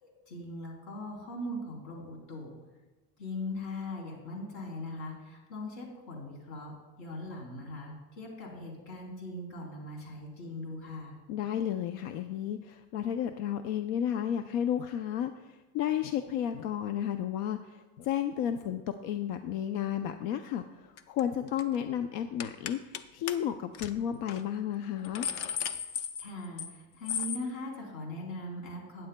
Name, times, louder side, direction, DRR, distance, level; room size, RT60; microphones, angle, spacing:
voice 1, 0.0-2.5 3.2-6.7 7.0-11.1 26.2-29.1, left 1 dB, 55° left, -1 dB, 3.1 m, -40 dB
voice 2, 11.3-25.3, left 10 dB, 90° left, 8 dB, 0.6 m, -32 dB
sound 1, 21.0-21.2 21.5-21.8 22.4-23.0 23.3-23.4 23.7-23.9 24.3-24.4 24.8-26.7 27.1-27.4, left 8 dB, 40° left, 0.4 m, -35 dB
15.5 x 9.4 x 2.2 m, 1.2 s
cardioid pair, 180°, 36 cm